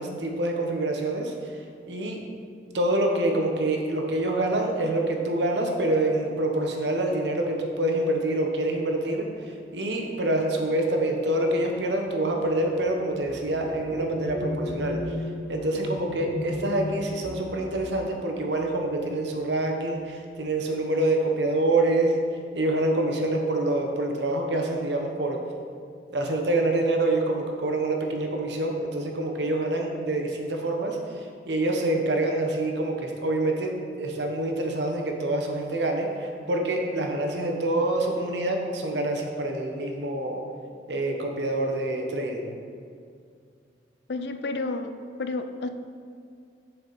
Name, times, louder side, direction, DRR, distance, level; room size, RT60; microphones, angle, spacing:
voice 1, 0.0-1.3 1.9-2.2 2.7-15.0 15.5-22.2 22.5-25.4 26.1-31.0 31.5-40.4 40.9-42.5, right 1 dB, 80° right, 2 dB, 1.1 m, -26 dB
sound 1, 11.4-19.7 20.6-20.8 21.1-21.7, left 1 dB, 85° left, 1.5 m, -36 dB
voice 2, 44.1-44.9 45.2-45.7, left 3 dB, 65° left, 9 dB, 0.5 m, -30 dB
7.0 x 6.9 x 4.1 m, 2.3 s
head